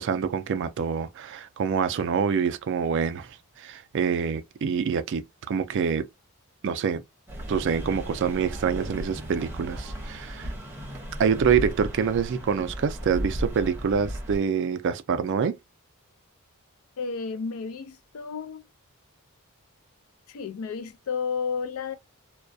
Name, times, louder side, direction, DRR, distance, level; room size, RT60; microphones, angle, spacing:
voice 1, 0.0-6.1 6.6-7.0 7.5-10.5 11.2-15.6, right 6 dB, 55° right, 0.3 m, -26 dB
sound 1, 7.3-14.4, equal, 10° right, 0.7 m, -35 dB
voice 2, 17.0-18.7 20.3-21.9, left 5 dB, 70° left, 0.4 m, -32 dB
2.3 x 2.1 x 2.5 m
head